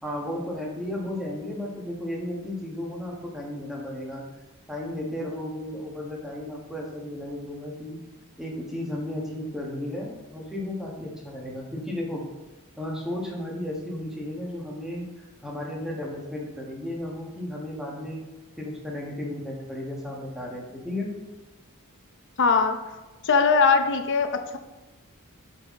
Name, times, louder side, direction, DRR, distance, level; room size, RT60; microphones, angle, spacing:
voice 1, 0.0-4.2 4.7-8.0 8.4-12.2 12.8-15.0 15.4-18.2 18.6-21.1, left 1 dB, ahead, -2 dB, 1.3 m, -34 dB
voice 2, 22.4-22.8 23.2-24.6, left 5 dB, 55° left, 7 dB, 0.7 m, -20 dB
7.8 x 5.6 x 3.7 m, 1.1 s
head